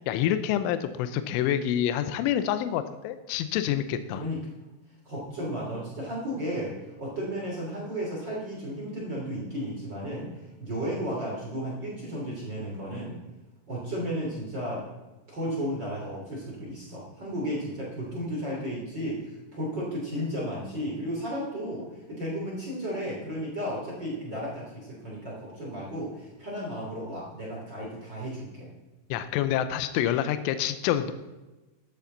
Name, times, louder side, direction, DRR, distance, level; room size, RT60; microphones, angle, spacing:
voice 1, 0.1-4.2 29.1-31.1, left 10 dB, 80° left, 11 dB, 3.1 m, -27 dB
voice 2, 5.0-10.3 10.6-13.1 13.7-14.9 15.3-28.7, equal, 25° right, -4 dB, 2.7 m, -34 dB
13.0 x 11.5 x 4.0 m, 1.1 s
omnidirectional pair, 6.0 m